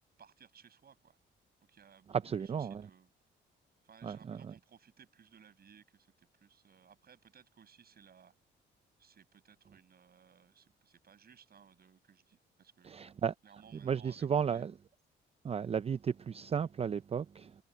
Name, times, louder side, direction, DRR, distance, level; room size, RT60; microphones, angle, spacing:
voice 1, 0.2-1.2 1.7-3.1 3.8-8.4 9.0-13.0 13.4-14.6, right 7 dB, 50° right, 7.6 m, -61 dB
voice 2, 2.1-2.9 4.0-4.5 12.8-13.3 13.8-14.7 15.4-17.5, right 7 dB, 30° right, 0.4 m, -34 dB
cardioid pair, 90°, 20 cm